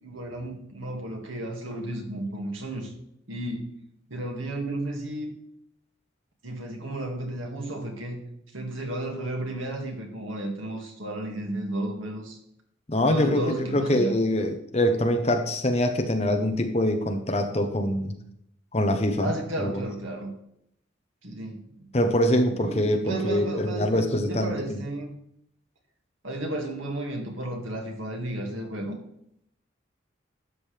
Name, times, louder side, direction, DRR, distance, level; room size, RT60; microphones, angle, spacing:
voice 1, 0.0-2.9 3.3-3.6 4.1-5.3 6.4-8.2 8.5-12.4 13.1-14.2 19.2-20.3 21.2-21.6 22.6-25.1 26.2-29.0, right 1 dB, 85° right, 2 dB, 2.2 m, -33 dB
voice 2, 12.9-18.1 18.7-19.3 19.6-19.8 21.9-24.8, left 1 dB, 30° left, 6 dB, 1.0 m, -24 dB
12.0 x 7.6 x 3.4 m, 0.74 s
head